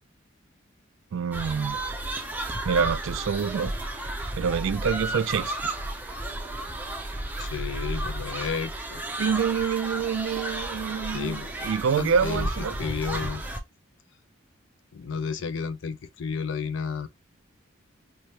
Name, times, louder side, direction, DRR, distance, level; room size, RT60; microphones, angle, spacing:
voice 1, 1.1-1.8 2.7-3.7 4.4-5.7 9.2-12.8, right 6 dB, 70° right, 0.3 m, -26 dB
sound 1, 1.3-13.6, right 1 dB, 10° right, 0.5 m, -33 dB
voice 2, 7.4-9.0 11.1-11.5 11.9-12.5 12.8-13.4 14.9-17.1, left 6 dB, 65° left, 0.5 m, -32 dB
4.7 x 2.1 x 2.8 m
head